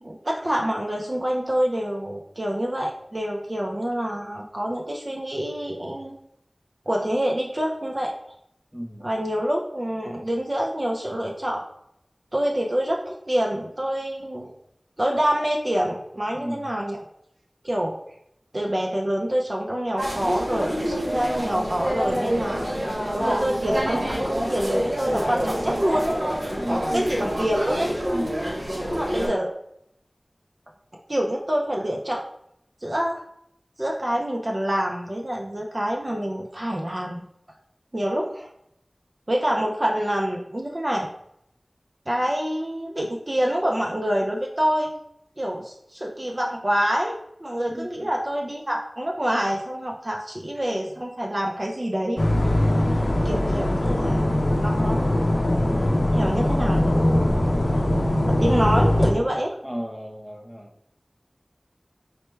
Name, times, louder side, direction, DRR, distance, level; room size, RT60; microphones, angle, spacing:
voice 1, 0.0-6.1 6.9-8.1 9.0-11.6 12.3-14.5 15.0-17.0 17.6-18.0 18.5-22.7 23.1-26.2 26.7-27.9 28.9-29.5 31.1-32.2 32.8-33.2 33.8-37.2 37.9-38.5 39.3-41.1 42.1-44.9 45.4-52.2 53.2-54.3 54.5-55.3 56.1-56.9 58.3-59.6, equal, 45° right, -1 dB, 0.5 m, -26 dB
voice 2, 8.7-9.1 16.3-16.7 26.6-27.1 28.1-28.5 47.7-47.8 52.8-53.2 59.6-60.7, equal, 10° right, 1 dB, 0.7 m, -33 dB
sound 1, 20.0-29.3, equal, 90° right, 1.2 m, -27 dB
sound 2, 52.2-59.1, left 1 dB, 70° left, 0.5 m, -21 dB
4.3 x 2.2 x 3.1 m, 0.74 s
wide cardioid pair, 40°, 0 cm